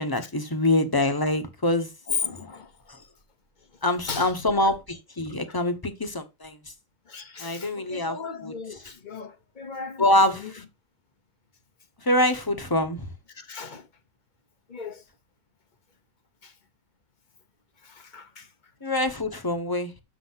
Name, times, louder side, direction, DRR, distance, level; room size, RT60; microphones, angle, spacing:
voice 1, 0.0-1.9 2.9-3.0 3.8-6.6 7.4-8.5 10.0-10.6 12.0-13.1 18.8-19.9, left 1 dB, 15° left, 1.1 m, -25 dB
voice 2, 2.1-2.7 4.1-4.3 4.6-4.7 5.5-5.6 7.1-10.5 13.3-13.9 14.7-15.0 16.4-16.5 17.8-18.5, left 5 dB, 35° left, 1.0 m, -36 dB
6.8 x 6.2 x 5.7 m
omnidirectional pair, 1.5 m